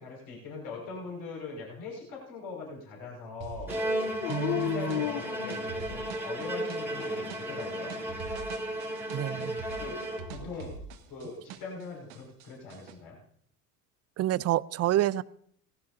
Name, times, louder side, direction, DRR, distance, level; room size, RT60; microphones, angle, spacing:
voice 1, 0.0-3.8 4.5-8.0 9.8-10.8 11.1-13.2, left 4 dB, 60° left, 5.8 m, -41 dB
sound 1, 3.4-11.8 12.1-12.9, right 5 dB, 60° right, 1.6 m, -45 dB
Bowed string instrument, 3.7-10.6, right 1 dB, 5° right, 2.7 m, -34 dB
Dog, 4.2-6.1 6.8-7.6 9.8-10.7, left 16 dB, 85° left, 0.5 m, -35 dB
voice 2, 4.3-5.0 9.1-9.6 14.2-15.2, right 13 dB, 40° right, 0.5 m, -28 dB
17.5 x 15.5 x 2.7 m
hypercardioid pair, 75°, 41 cm